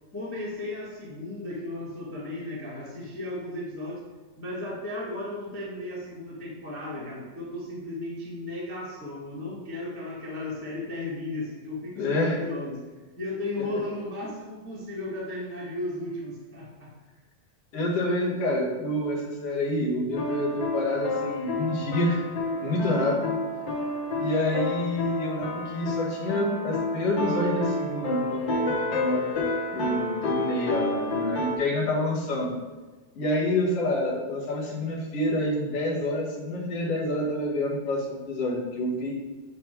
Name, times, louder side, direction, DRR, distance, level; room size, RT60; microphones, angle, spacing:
voice 1, 0.1-4.0 4.4-12.8 13.1-16.9, left 2 dB, 15° left, -6 dB, 0.4 m, -35 dB
voice 2, 12.0-12.4 17.7-22.2 22.6-23.4 24.2-29.5 29.7-32.5 33.2-39.1, left 1 dB, 50° left, -4 dB, 2.3 m, -27 dB
sound 1, 20.1-31.6, left 2 dB, 70° left, 1.1 m, -30 dB
7.1 x 4.6 x 4.6 m, 1.3 s
omnidirectional pair, 3.9 m